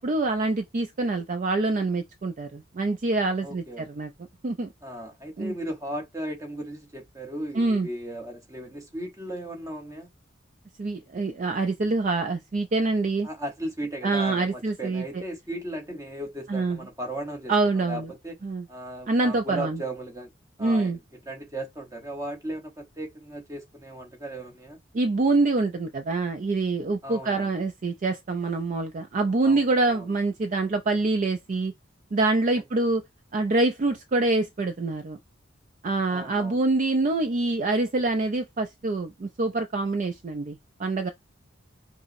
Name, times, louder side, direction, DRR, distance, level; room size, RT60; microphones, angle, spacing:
voice 1, 0.0-4.1 4.4-4.7 5.4-5.5 7.6-7.9 10.8-13.3 14.0-15.0 16.5-16.8 17.5-18.1 18.4-18.6 19.1-19.8 20.6-21.0 24.9-31.7 32.1-33.0 33.3-35.2 35.8-41.1, right 3 dB, 40° right, 0.4 m, -25 dB
voice 2, 3.4-3.9 4.8-10.1 13.2-18.4 18.7-20.3 20.6-21.0 21.3-24.8 27.0-27.5 29.4-30.1 32.5-32.9 36.1-36.6, right 1 dB, 15° right, 0.9 m, -36 dB
5.3 x 2.0 x 2.5 m
head